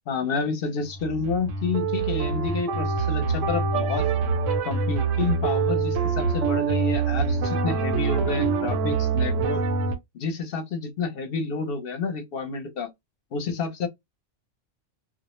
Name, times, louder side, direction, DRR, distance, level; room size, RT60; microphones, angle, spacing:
voice 1, 0.1-4.1 4.6-9.6 10.1-12.9 13.3-13.9, left 4 dB, 55° left, 0.8 m, -29 dB
sound 1, 0.9-10.0, right 4 dB, 90° right, 1.0 m, -25 dB
2.3 x 2.0 x 2.9 m
omnidirectional pair, 1.3 m